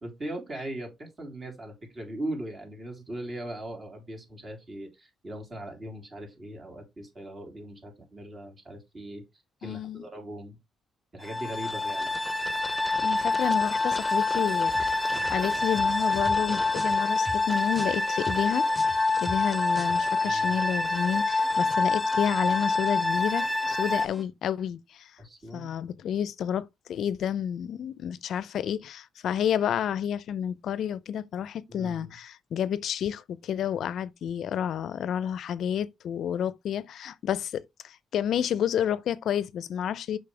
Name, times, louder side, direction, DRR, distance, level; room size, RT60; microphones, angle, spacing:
voice 1, 0.0-10.6 11.1-12.2 20.2-20.6 25.2-25.7 31.7-32.2, right 1 dB, 35° right, 3.4 m, -39 dB
voice 2, 9.6-10.0 13.0-18.7 19.2-25.1 25.5-40.2, left 9 dB, 70° left, 0.5 m, -30 dB
sound 1, 11.3-24.1, left 3 dB, 10° left, 0.8 m, -26 dB
sound 2, 14.7-22.2 22.5-24.2, equal, 15° right, 2.0 m, -44 dB
6.9 x 5.5 x 3.3 m
cardioid pair, 90°, 0 cm